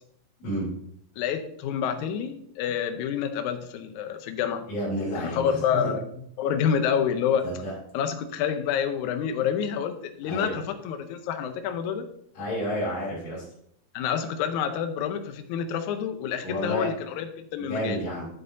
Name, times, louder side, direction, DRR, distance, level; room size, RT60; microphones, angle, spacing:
voice 1, 1.2-4.6 5.3-6.0 6.4-7.4 7.9-12.1 13.9-18.0, left 8 dB, 75° left, 7 dB, 1.9 m, -28 dB
voice 2, 4.7-5.9 7.4-7.7 10.2-10.6 12.3-13.4 16.4-16.9 17.6-18.2, equal, 45° left, -6 dB, 4.5 m, -30 dB
10.0 x 7.8 x 2.8 m, 0.69 s
omnidirectional pair, 4.2 m